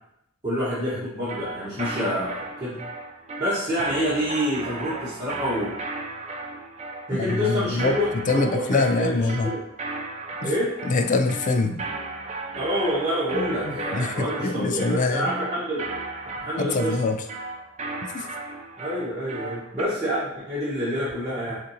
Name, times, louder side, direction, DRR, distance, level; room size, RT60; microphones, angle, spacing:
voice 1, 0.4-2.8 3.4-5.7 7.1-9.6 10.4-10.7 12.5-15.8 16.4-17.1 18.8-21.6, equal, 15° right, -13 dB, 1.3 m, -27 dB
sound 1, 1.3-19.8, right 3 dB, 30° right, 0.4 m, -35 dB
voice 2, 7.1-8.0 8.3-9.5 10.4-10.5 10.8-11.8 13.3-15.3 16.6-17.2 18.0-18.3, left 3 dB, 35° left, 6 dB, 0.3 m, -25 dB
6.3 x 2.6 x 2.8 m, 0.82 s
head